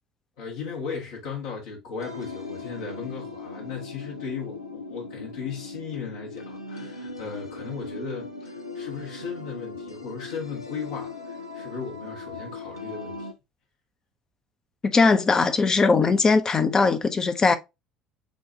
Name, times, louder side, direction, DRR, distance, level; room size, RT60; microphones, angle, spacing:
voice 1, 0.4-13.3, left 5 dB, 65° left, 1.2 m, -36 dB
sound 1, 2.0-13.3, left 3 dB, 85° left, 0.5 m, -39 dB
voice 2, 14.8-17.5, left 4 dB, 25° left, 0.7 m, -20 dB
7.2 x 2.4 x 2.7 m
figure-of-eight pair, 60°, 2 cm